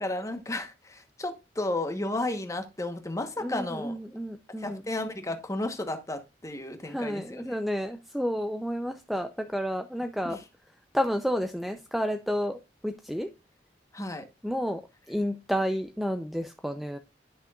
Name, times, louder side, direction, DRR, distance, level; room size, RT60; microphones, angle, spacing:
voice 1, 0.0-3.9 4.6-7.6 10.2-10.4 13.9-14.2, left 2 dB, 15° left, 1.1 m, -33 dB
voice 2, 3.4-4.8 6.9-10.4 10.9-12.6 12.8-13.3 14.4-14.8 15.1-17.0, equal, ahead, 0.5 m, -30 dB
11.0 x 6.1 x 2.4 m
head